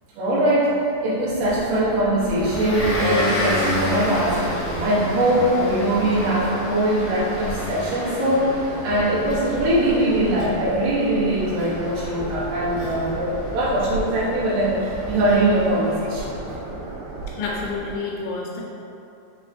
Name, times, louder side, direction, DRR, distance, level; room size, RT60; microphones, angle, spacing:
voice 1, 0.2-0.8 1.0-16.3, right 1 dB, 70° right, -10 dB, 2.1 m, -22 dB
sound 1, 1.4-18.0, right 3 dB, 85° right, 3.0 m, -35 dB
Motor vehicle (road) / Engine, 2.2-16.4, left 1 dB, 65° left, 1.8 m, -30 dB
voice 2, 16.5-16.8 17.4-18.6, left 4 dB, 85° left, -2 dB, 2.7 m, -30 dB
6.6 x 2.9 x 2.6 m, 2.7 s
omnidirectional pair, 5.2 m